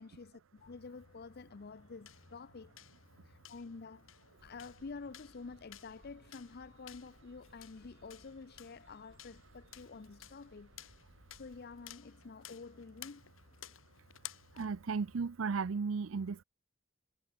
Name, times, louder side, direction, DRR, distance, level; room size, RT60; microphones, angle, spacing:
voice 1, 0.0-2.7 3.3-4.1 4.4-10.7 11.4-13.2, left 4 dB, 50° left, 0.6 m, -49 dB
sound 1, 0.6-15.3, left 10 dB, 90° left, 2.3 m, -56 dB
sound 2, 4.4-12.0, right 1 dB, 70° right, 6.1 m, -64 dB
voice 2, 14.6-16.4, right 5 dB, 85° right, 0.5 m, -35 dB
head